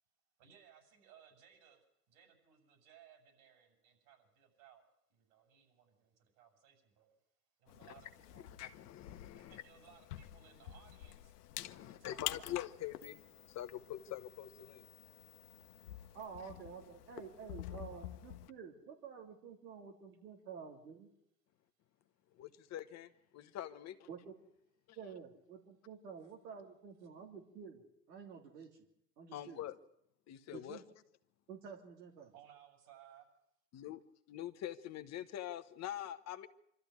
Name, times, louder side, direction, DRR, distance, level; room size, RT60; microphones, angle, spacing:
voice 1, 0.4-7.1 7.6-8.5 9.4-11.3 11.7-12.6 32.3-33.3, right 9 dB, 65° right, 7.5 m, -62 dB
sound 1, 7.7-18.5, left 13 dB, 70° left, 1.1 m, -49 dB
voice 2, 8.4-9.6 11.6-14.8 22.4-24.1 24.9-25.0 29.3-29.7 30.3-30.8 33.7-34.0 34.3-36.5, left 12 dB, 35° left, 1.1 m, -45 dB
voice 3, 16.1-21.1 24.1-24.3 25.0-28.7 29.2-29.6 30.5-30.8 31.5-32.3, right 6 dB, 80° right, 3.2 m, -50 dB
24.5 x 13.5 x 9.6 m
hypercardioid pair, 105°, 47 cm